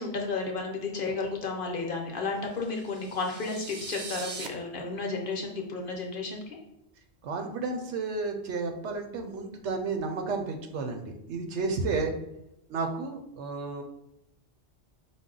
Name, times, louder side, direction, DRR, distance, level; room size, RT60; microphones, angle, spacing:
voice 1, 0.0-6.6, left 3 dB, 55° left, 1 dB, 0.8 m, -32 dB
sound 1, 2.6-4.5, right 5 dB, 60° right, 0.5 m, -41 dB
voice 2, 7.2-12.1 12.7-13.8, right 3 dB, 80° right, 5 dB, 0.9 m, -32 dB
5.3 x 2.2 x 3.7 m, 0.83 s
omnidirectional pair, 1.2 m